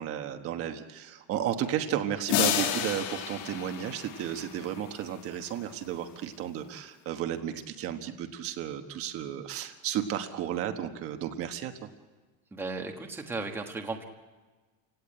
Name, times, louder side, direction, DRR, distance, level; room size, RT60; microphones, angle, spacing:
voice 1, 0.0-11.9, right 10 dB, 35° right, 6 dB, 1.3 m, -33 dB
sound 1, 2.3-4.8, left 10 dB, 50° left, 2.2 m, -30 dB
voice 2, 12.5-14.0, right 3 dB, 5° right, 3 dB, 1.3 m, -35 dB
29.0 x 17.5 x 8.9 m, 1.3 s
cardioid pair, 180°, 38 cm